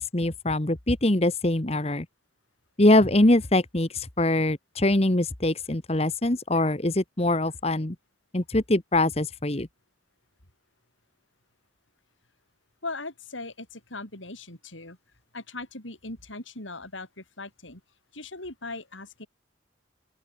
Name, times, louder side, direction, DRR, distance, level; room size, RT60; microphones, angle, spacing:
voice 1, 0.0-2.0 2.8-7.9 8.3-9.7, left 1 dB, 35° left, 1.4 m, -23 dB
voice 2, 12.8-15.0 15.3-17.8 18.1-19.3, left 2 dB, 85° left, 7.5 m, -39 dB
open air
head